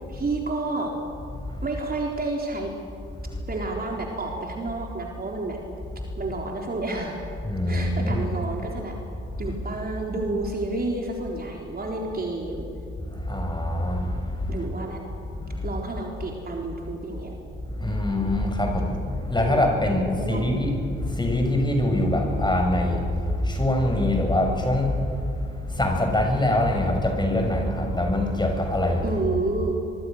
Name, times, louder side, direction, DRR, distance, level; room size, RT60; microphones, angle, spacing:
voice 1, 0.1-0.9 1.6-2.7 3.5-5.6 6.2-7.3 7.7-9.0 9.4-12.7 14.5-15.0 15.6-17.4 19.5-19.9 20.2-20.4 29.0-29.8, right 2 dB, 30° right, 0 dB, 3.9 m, -30 dB
voice 2, 1.4-1.8 3.1-3.3 7.4-8.3 9.4-9.6 13.0-14.7 15.3-15.7 17.7-29.2, left 1 dB, 15° left, 3 dB, 6.5 m, -24 dB
24.5 x 23.0 x 6.6 m, 2.5 s
figure-of-eight pair, 50°, 31 cm